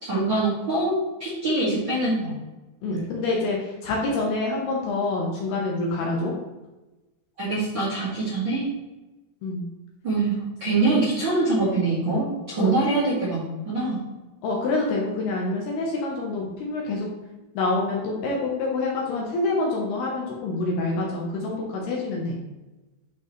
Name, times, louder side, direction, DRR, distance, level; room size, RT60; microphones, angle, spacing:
voice 1, 0.0-2.3 2.9-3.0 7.4-8.7 10.0-10.3 10.6-14.0, right 2 dB, 40° right, -9 dB, 1.8 m, -24 dB
voice 2, 2.8-6.3 9.4-9.6 12.6-12.7 14.4-17.1 17.6-22.3, left 2 dB, 70° left, -2 dB, 2.7 m, -26 dB
11.0 x 5.1 x 3.2 m, 1.1 s
omnidirectional pair, 5.4 m